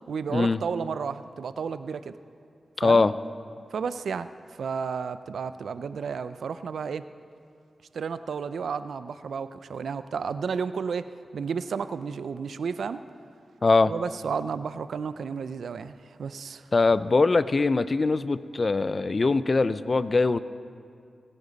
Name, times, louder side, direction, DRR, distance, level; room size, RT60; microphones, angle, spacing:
voice 1, 0.1-2.2 2.8-3.0 3.7-7.1 7.9-13.0 13.9-16.7, right 6 dB, 85° right, 13 dB, 0.4 m, -32 dB
voice 2, 2.8-3.1 13.6-13.9 16.7-20.4, left 3 dB, 50° left, 15 dB, 0.5 m, -22 dB
24.5 x 10.0 x 4.1 m, 2.3 s
cardioid pair, 50°, 0 cm